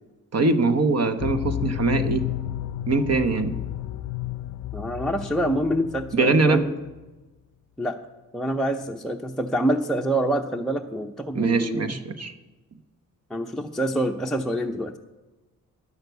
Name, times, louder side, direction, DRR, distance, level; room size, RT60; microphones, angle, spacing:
voice 1, 0.3-2.2 2.9-3.5 6.1-6.6 11.3-12.3, right 3 dB, 45° right, 10 dB, 1.0 m, -22 dB
sound 1, 1.2-6.6 6.9-7.0, left 13 dB, 60° left, 0.5 m, -32 dB
voice 2, 4.7-6.7 7.8-8.0 8.3-12.0 13.3-14.9, right 1 dB, ahead, 2 dB, 0.6 m, -26 dB
10.5 x 6.5 x 8.0 m, 1.1 s
cardioid pair, 65°, 34 cm